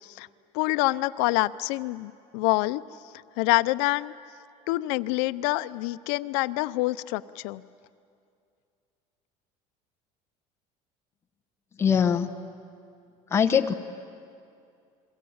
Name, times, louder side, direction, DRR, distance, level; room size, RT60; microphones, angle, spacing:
voice 1, 0.5-2.8 3.4-4.1 4.7-7.6, left 19 dB, 85° left, 14 dB, 0.7 m, -26 dB
voice 2, 11.8-12.3 13.3-13.7, left 7 dB, 20° left, 5 dB, 1.0 m, -22 dB
29.5 x 22.5 x 8.8 m, 2.4 s
cardioid pair, 165°, 14 cm